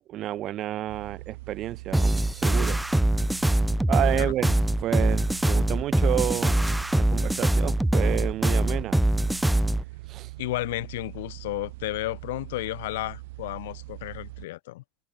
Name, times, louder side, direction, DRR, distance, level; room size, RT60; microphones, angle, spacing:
voice 1, 0.1-2.8 3.1-3.3 3.9-6.6 7.0-9.0 10.1-10.3, right 13 dB, 45° right, 0.8 m, -30 dB
sound 1, 0.9-14.5, right 21 dB, 80° right, 0.9 m, -42 dB
sound 2, 1.9-9.8, right 1 dB, 5° right, 0.6 m, -23 dB
voice 2, 10.4-14.8, left 18 dB, 85° left, 0.6 m, -32 dB
supercardioid pair, 120°, 0 cm